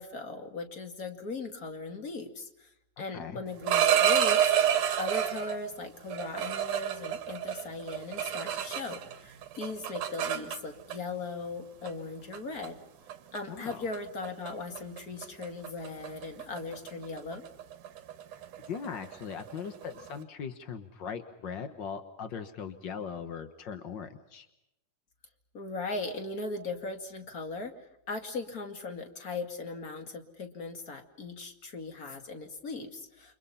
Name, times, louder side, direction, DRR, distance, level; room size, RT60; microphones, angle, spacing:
voice 1, 0.0-2.7 3.0-4.5 5.0-12.8 13.3-17.4 25.5-27.7 28.1-33.3, left 3 dB, 30° left, 6 dB, 2.3 m, -38 dB
sound 1, 3.5-5.6 6.1-9.2 9.4-11.0 11.9-12.0 12.3-12.7 13.1-13.4 13.7-14.0 14.2-14.5 14.8-20.1, right 10 dB, 65° right, 2.8 m, -29 dB
voice 2, 13.5-13.8 18.7-24.5, left 6 dB, 70° left, 9 dB, 1.1 m, -39 dB
29.5 x 26.0 x 5.7 m, 0.87 s
omnidirectional pair, 4.0 m